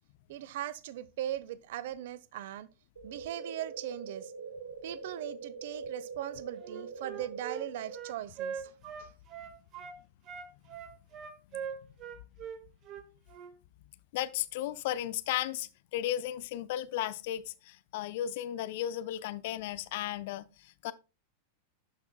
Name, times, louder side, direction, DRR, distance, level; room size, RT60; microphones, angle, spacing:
voice 1, 0.3-2.7 3.0-4.3 4.8-8.7 9.0-9.1, right 12 dB, 55° right, 0.5 m, -39 dB
sound 1, 3.0-8.0, right 4 dB, 75° right, 1.3 m, -43 dB
Wind instrument woodwind instrument, 6.6-10.0 10.3-13.5, right 7 dB, 35° right, 1.0 m, -42 dB
voice 2, 14.1-20.9, left 12 dB, 50° left, 0.5 m, -35 dB
11.5 x 5.7 x 2.3 m
figure-of-eight pair, 90°, 0 cm